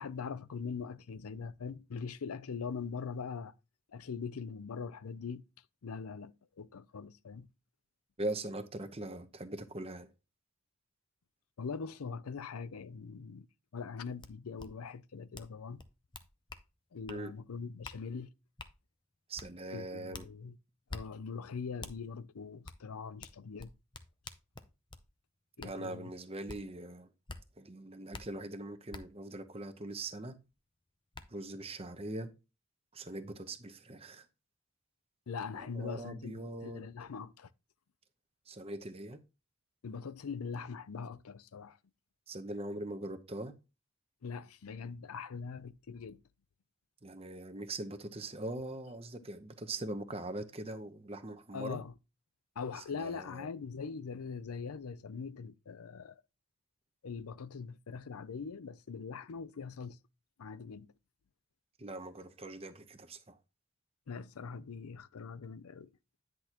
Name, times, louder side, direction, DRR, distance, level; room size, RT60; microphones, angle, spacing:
voice 1, 0.0-3.5 3.9-5.4 5.8-7.5 11.6-13.5 13.7-15.8 16.9-18.3 19.7-20.6 20.9-23.7 25.6-26.1 35.3-37.5 39.8-41.8 44.2-46.2 51.5-51.9 52.6-56.2 57.0-60.0 60.4-60.9 64.1-65.9, left 5 dB, 90° left, 0.5 m, -42 dB
voice 2, 8.2-10.1 17.1-17.3 19.3-20.3 25.6-27.1 27.6-30.3 31.3-32.3 32.9-34.3 35.5-36.9 38.5-39.2 42.3-43.5 47.0-51.8 52.8-53.5 61.8-63.4, right 2 dB, 25° right, 0.8 m, -41 dB
sound 1, 14.2-14.3 14.6-14.7 15.3-15.5 15.8-16.6 17.1-17.2 17.8-18.0 18.6-18.7 19.4-19.5 20.1-20.3 20.9-21.0 21.8-21.9 22.7-22.8 23.2-25.0 25.6-25.7 26.5-26.6 27.3-27.4 28.1-28.2 28.9-29.0 30.5-30.6 31.1-31.2, left 3 dB, 20° left, 0.6 m, -46 dB
10.5 x 6.1 x 2.9 m
head